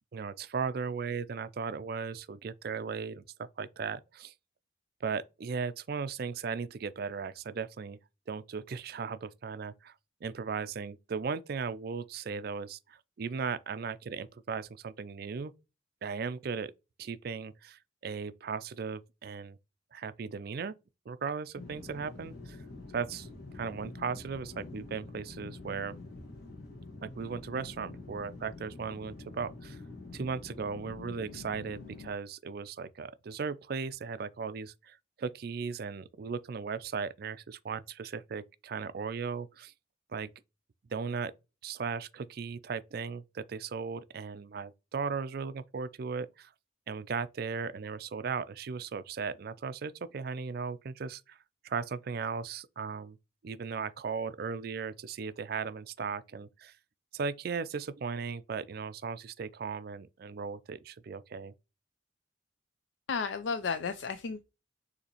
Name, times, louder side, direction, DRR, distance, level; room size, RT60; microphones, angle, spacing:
voice 1, 0.1-4.3 5.0-8.0 8.3-9.9 10.2-15.5 16.0-16.7 17.0-19.6 19.9-20.7 21.1-22.6 22.9-23.3 23.5-26.0 27.0-29.8 30.1-39.7 40.1-40.3 40.9-41.3 41.6-46.5 46.9-51.4 51.6-53.2 53.4-56.8 57.1-61.5, right 5 dB, 50° right, 0.4 m, -37 dB
sound 1, 21.5-32.1, left 2 dB, 50° left, 1.6 m, -46 dB
voice 2, 63.1-64.4, left 5 dB, 70° left, 0.4 m, -33 dB
6.6 x 2.8 x 2.9 m
head